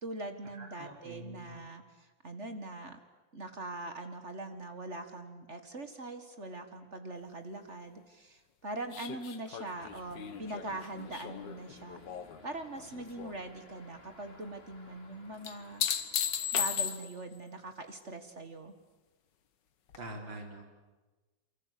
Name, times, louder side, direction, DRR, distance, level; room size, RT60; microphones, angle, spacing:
voice 1, 0.0-3.0 3.3-12.0 12.4-15.8 16.5-18.7, right 2 dB, 40° right, 7 dB, 2.0 m, -42 dB
voice 2, 0.5-1.5 20.0-20.6, right 1 dB, 80° right, 2 dB, 4.2 m, -45 dB
sound 1, 8.9-12.4 12.7-13.4 15.4-17.3 19.9-20.0, left 9 dB, 70° left, 1.9 m, -35 dB
sound 2, 9.8-16.5, left 2 dB, 30° left, 3.1 m, -57 dB
28.5 x 24.5 x 8.5 m, 1.2 s
omnidirectional pair, 2.1 m